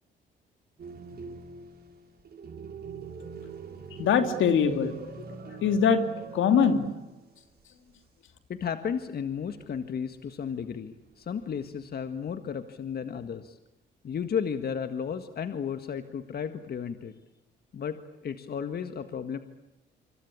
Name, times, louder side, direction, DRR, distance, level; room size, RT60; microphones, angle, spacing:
sound 1, 0.8-7.3 7.6-7.7 9.4-10.1 11.1-11.8, right 5 dB, 55° right, 6.2 m, -43 dB
voice 1, 4.0-5.1 5.4-6.1 6.3-6.9, left 6 dB, 75° left, 8 dB, 3.0 m, -23 dB
voice 2, 8.5-13.6 14.0-17.1 17.7-19.4, left 7 dB, 50° left, 9 dB, 1.8 m, -33 dB
26.5 x 26.0 x 8.7 m, 0.93 s
cardioid pair, 90°, 20 cm